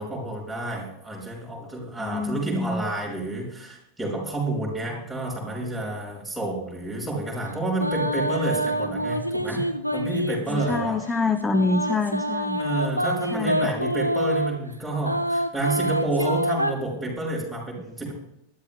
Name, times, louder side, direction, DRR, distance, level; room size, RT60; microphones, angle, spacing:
voice 1, 0.0-9.6 9.9-11.0 12.6-18.1, right 2 dB, 5° right, -3 dB, 5.6 m, -29 dB
voice 2, 2.0-2.9 9.5-9.7 10.5-12.6 13.3-13.8, left 3 dB, 15° left, 9 dB, 0.8 m, -26 dB
sound 1, 7.8-10.9 11.5-14.6 15.0-16.7, equal, 90° right, 1.0 m, -26 dB
23.0 x 13.5 x 2.3 m, 0.80 s
figure-of-eight pair, 90°, 0 cm